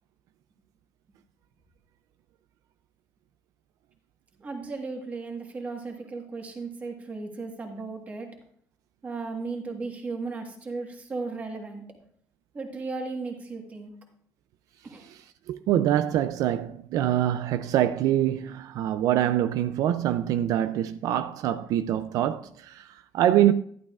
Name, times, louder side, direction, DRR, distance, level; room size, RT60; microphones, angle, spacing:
voice 1, 4.4-8.3 9.0-11.8 12.5-13.9 14.8-15.0, right 3 dB, 25° right, 1.4 m, -35 dB
voice 2, 15.0-23.5, right 12 dB, 65° right, 0.4 m, -25 dB
12.0 x 11.0 x 2.4 m
cardioid pair, 175°, 6 cm